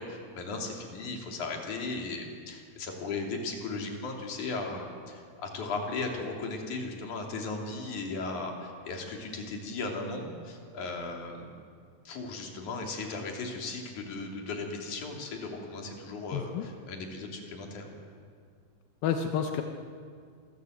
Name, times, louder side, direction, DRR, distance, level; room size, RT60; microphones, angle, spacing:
voice 1, 0.0-11.6 12.1-17.9, left 3 dB, 45° left, 1 dB, 3.9 m, -36 dB
voice 2, 16.3-16.7 19.0-19.6, left 8 dB, 75° left, 5 dB, 2.2 m, -29 dB
27.0 x 18.5 x 8.0 m, 2.2 s
omnidirectional pair, 5.5 m